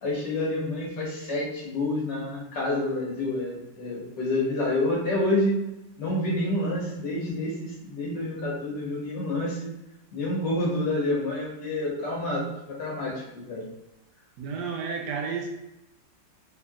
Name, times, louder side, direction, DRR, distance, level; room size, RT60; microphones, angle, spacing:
voice 1, 0.0-5.6 6.0-9.7 10.1-13.6, left 1 dB, 65° left, -3 dB, 1.7 m, -28 dB
voice 2, 14.4-15.5, right 5 dB, 75° right, 2 dB, 1.1 m, -31 dB
4.4 x 3.5 x 2.4 m, 0.92 s
omnidirectional pair, 2.0 m